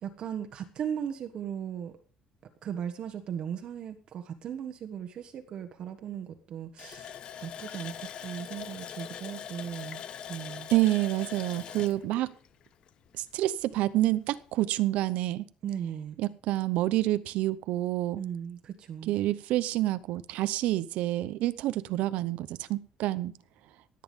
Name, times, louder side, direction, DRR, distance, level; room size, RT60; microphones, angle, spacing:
voice 1, 0.0-1.9 2.6-7.1 7.4-10.0 10.3-10.7 15.6-16.2 18.2-19.1, right 8 dB, 40° right, 1.3 m, -37 dB
Water tap faucet, 6.8-13.3 13.6-13.7 14.2-14.3, left 8 dB, 40° left, 0.8 m, -42 dB
voice 2, 10.7-12.3 13.2-15.4 16.2-18.2 19.1-23.3, right 15 dB, 75° right, 0.7 m, -28 dB
17.0 x 9.4 x 5.3 m
cardioid pair, 180°, 2 cm